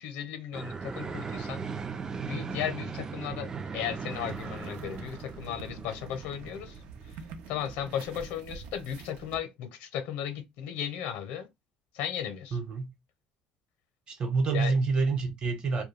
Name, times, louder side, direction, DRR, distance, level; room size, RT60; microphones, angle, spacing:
voice 1, 0.0-1.6 2.3-6.8 7.1-7.2 7.5-11.5 11.9-12.6 14.5-14.8, left 9 dB, 85° left, 0.7 m, -35 dB
sound 1, 0.5-7.6, right 5 dB, 25° right, 0.3 m, -38 dB
sound 2, 4.1-9.4, right 5 dB, 75° right, 0.6 m, -46 dB
voice 2, 12.5-12.9 14.1-15.8, right 4 dB, 40° right, 0.9 m, -27 dB
2.3 x 2.2 x 3.2 m
cardioid pair, 125°, 2 cm